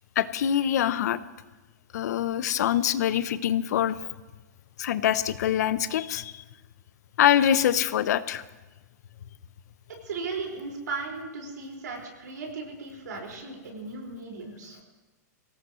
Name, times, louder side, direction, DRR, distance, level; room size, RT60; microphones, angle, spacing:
voice 1, 0.2-1.2 1.9-4.0 4.8-6.4 7.2-8.4, left 10 dB, 70° left, 15 dB, 0.7 m, -24 dB
voice 2, 10.0-14.8, right 4 dB, 85° right, 0 dB, 5.1 m, -36 dB
22.5 x 18.0 x 3.1 m, 1.2 s
hypercardioid pair, 130°, 9 cm